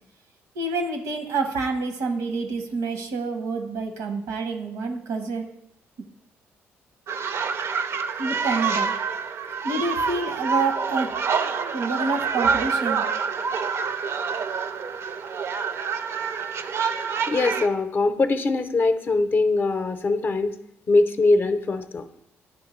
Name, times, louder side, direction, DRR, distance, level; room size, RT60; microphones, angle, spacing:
voice 1, 0.5-5.4 8.2-8.9 9.6-11.1 11.7-13.1, right 3 dB, 85° right, 5 dB, 0.9 m, -27 dB
sound 1, 7.1-17.7, right 5 dB, 55° right, 0.4 m, -27 dB
voice 2, 17.3-20.6 20.9-22.1, left 3 dB, 40° left, 9 dB, 0.5 m, -22 dB
9.5 x 3.5 x 3.1 m, 0.76 s
supercardioid pair, 70°, 5 cm